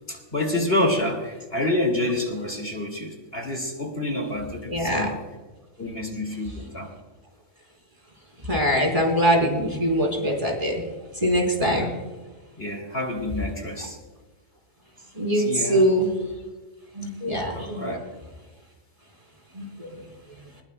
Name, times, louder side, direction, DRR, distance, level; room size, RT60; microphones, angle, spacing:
voice 1, 0.1-5.2 5.8-6.9 11.6-11.9 12.6-14.0 15.3-15.9 17.5-18.0, left 1 dB, 45° left, 2 dB, 2.5 m, -28 dB
voice 2, 4.7-5.1 8.5-10.8 11.2-11.9 15.2-16.1 17.0-17.9 19.5-20.0, equal, 25° right, 0 dB, 3.8 m, -23 dB
21.0 x 20.5 x 2.2 m, 1.2 s
omnidirectional pair, 1.4 m